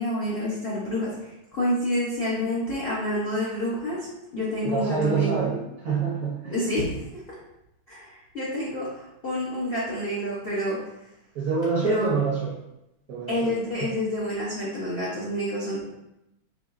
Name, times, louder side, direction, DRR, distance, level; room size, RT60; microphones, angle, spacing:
voice 1, 0.0-4.1 4.3-5.5 6.5-7.0 7.3-7.4 7.9-10.8 11.8-12.2 13.3-15.8, left 1 dB, 85° left, -8 dB, 0.5 m, -28 dB
voice 2, 4.6-6.7 11.3-12.5 13.1-13.5 15.1-15.3, right 5 dB, 65° right, -4 dB, 0.8 m, -27 dB
4.9 x 3.0 x 2.4 m, 0.90 s
omnidirectional pair, 2.3 m